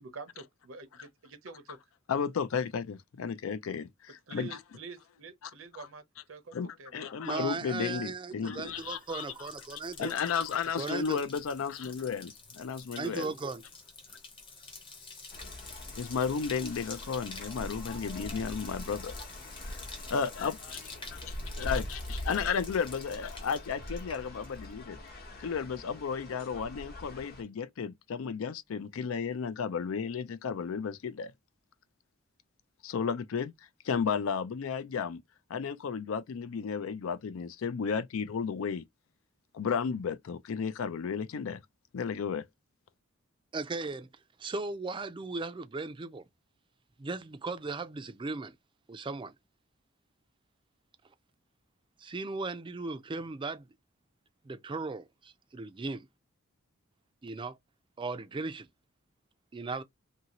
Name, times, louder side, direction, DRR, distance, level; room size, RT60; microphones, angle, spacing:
voice 1, 0.0-1.8 4.3-6.0 6.3-7.1, right 4 dB, 70° right, 0.7 m, -47 dB
voice 2, 2.1-4.6 5.4-5.9 6.5-9.5 10.0-13.3 15.9-19.2 19.6-19.8 20.1-20.8 21.1-25.0 25.4-31.3 32.8-33.5 33.8-35.2 35.5-38.8 39.5-41.6 41.9-42.5, left 6 dB, 75° left, 0.4 m, -33 dB
voice 3, 7.2-10.1 10.7-11.2 13.0-13.6 43.5-44.1 44.4-46.3 47.0-48.6 48.9-49.3 52.0-53.7 54.4-56.1 57.2-57.6 58.0-58.7 59.5-59.8, right 3 dB, 25° right, 0.4 m, -37 dB
Bathtub (filling or washing), 8.7-24.8 25.1-25.6, left 3 dB, 25° left, 0.8 m, -48 dB
sound 1, 15.3-27.4, left 1 dB, 50° left, 0.9 m, -43 dB
2.7 x 2.7 x 2.9 m
head